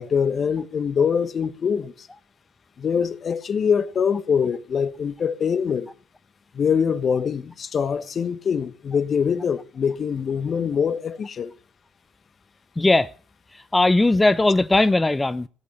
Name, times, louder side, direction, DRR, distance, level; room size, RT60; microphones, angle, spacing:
voice 1, 0.0-2.1 2.8-5.9 6.5-11.5, left 7 dB, 50° left, 1.2 m, -24 dB
voice 2, 12.8-13.1 13.7-15.5, left 2 dB, 15° left, 0.7 m, -18 dB
17.5 x 8.3 x 8.0 m
hypercardioid pair, 50°, 0 cm